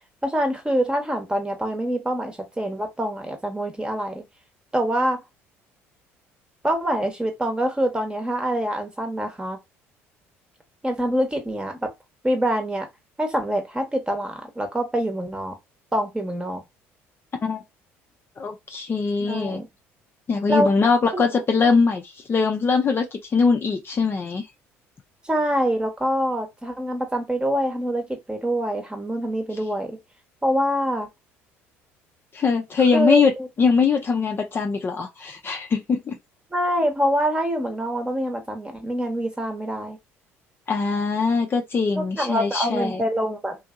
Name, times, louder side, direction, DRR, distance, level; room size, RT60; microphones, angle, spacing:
voice 1, 0.2-4.2 4.7-5.2 6.6-9.6 10.8-11.9 12.2-12.9 13.2-15.6 15.9-16.6 19.2-19.7 20.5-20.7 21.1-21.2 25.2-30.0 30.4-31.1 32.9-33.5 36.5-40.0 42.0-43.6, equal, 15° right, 1.0 m, -25 dB
voice 2, 18.4-19.6 20.3-24.5 32.3-33.3 33.6-36.2 40.7-43.0, left 5 dB, 35° left, 0.6 m, -22 dB
2.7 x 2.6 x 2.5 m
hypercardioid pair, 65°, 7 cm